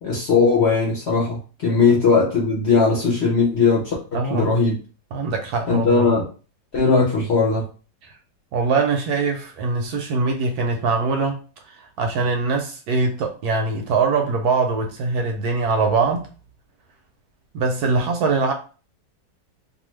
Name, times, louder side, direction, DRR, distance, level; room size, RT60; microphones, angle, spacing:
voice 1, 0.0-4.8 5.7-6.2 6.7-7.7, left 4 dB, 55° left, 0.8 m, -19 dB
voice 2, 4.1-4.5 5.1-6.1 8.0-8.1 8.5-11.4 11.7-16.3 17.5-18.5, right 4 dB, 70° right, 1.0 m, -22 dB
2.7 x 2.4 x 3.0 m
omnidirectional pair, 1.9 m